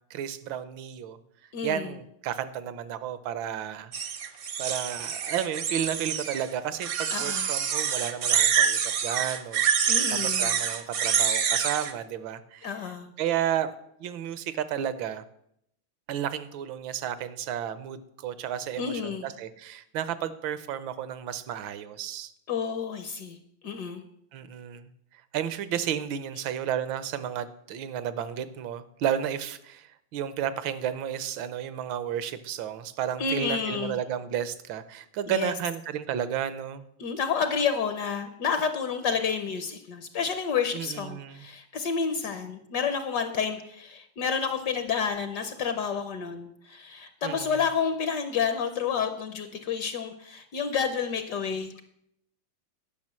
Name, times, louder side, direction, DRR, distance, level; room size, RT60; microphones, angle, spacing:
voice 1, 0.1-1.2 1.6-3.9 4.6-9.6 10.1-12.7 13.2-13.7 14.0-15.2 16.1-22.3 24.3-24.9 25.3-36.8 40.7-41.4 47.2-47.6, right 9 dB, 75° right, 14 dB, 1.5 m, -32 dB
voice 2, 1.5-1.9 7.1-7.5 9.9-10.6 12.6-13.1 18.8-19.3 22.5-24.0 33.2-34.0 35.3-35.5 37.0-51.8, left 6 dB, 65° left, 8 dB, 1.2 m, -30 dB
sound 1, 3.9-6.4 6.8-11.9, right 7 dB, 60° right, 0.8 m, -26 dB
10.5 x 5.9 x 7.4 m, 0.75 s
omnidirectional pair, 2.2 m